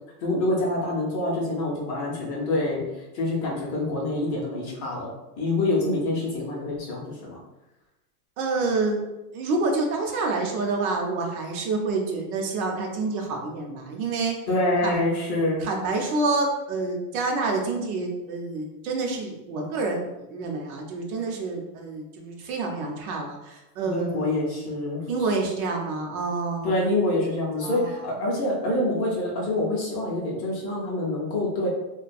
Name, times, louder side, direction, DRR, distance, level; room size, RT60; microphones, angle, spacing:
voice 1, 0.2-2.8 3.1-7.4 14.5-15.6 23.8-25.1 26.6-31.7, left 2 dB, 30° left, -3 dB, 0.5 m, -26 dB
voice 2, 8.4-9.0 9.3-14.3 14.8-15.0 15.6-24.6 25.1-26.7 27.6-28.0, right 3 dB, 70° right, 1 dB, 0.7 m, -28 dB
2.3 x 2.2 x 2.5 m, 0.96 s
supercardioid pair, 145°, 46 cm